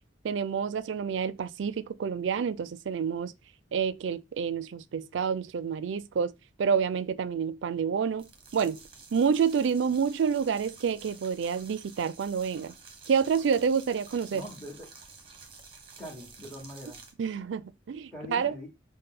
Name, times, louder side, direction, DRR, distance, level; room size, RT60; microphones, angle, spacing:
voice 1, 0.2-3.3 3.7-6.3 6.6-8.3 8.5-8.8 9.1-12.7 13.1-14.4 17.2-18.6, right 6 dB, 80° right, 0.4 m, -28 dB
sound 1, 8.1-17.1, right 4 dB, 30° right, 0.9 m, -50 dB
voice 2, 14.3-14.9 16.0-17.0 18.1-18.7, left 1 dB, 5° left, 1.4 m, -42 dB
5.5 x 2.1 x 3.7 m
head